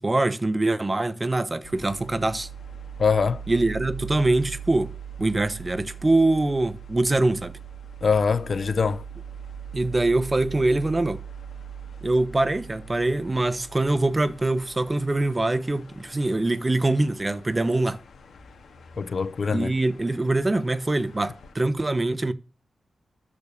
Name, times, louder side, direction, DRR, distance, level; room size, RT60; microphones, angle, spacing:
voice 1, 0.0-2.5 3.5-4.9 5.2-7.5 9.7-11.2 12.0-18.0 19.5-22.3, right 2 dB, 25° right, 1.0 m, -23 dB
sound 1, 1.6-21.5, right 6 dB, 85° left, 2.0 m, -41 dB
voice 2, 3.0-3.4 8.0-9.0 19.0-19.7, left 5 dB, 55° left, 0.6 m, -23 dB
13.5 x 5.3 x 6.9 m
cardioid pair, 75°, 0 cm